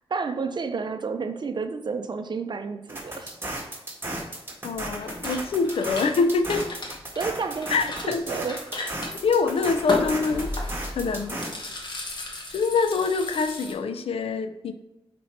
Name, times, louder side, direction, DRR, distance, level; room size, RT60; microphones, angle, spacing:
voice 1, 0.1-3.4 7.2-8.6, right 5 dB, 50° right, 8 dB, 0.6 m, -31 dB
sound 1, 2.9-11.5, right 1 dB, 25° right, 1.6 m, -35 dB
voice 2, 4.6-6.8 7.7-8.2 8.8-8.9 9.2-10.5 10.9-11.4 12.5-14.7, left 4 dB, 80° left, 9 dB, 0.5 m, -25 dB
sound 2, 4.7-13.7, left 1 dB, 50° left, 1.3 m, -35 dB
5.6 x 4.3 x 4.3 m, 0.95 s
wide cardioid pair, 85°, 10 cm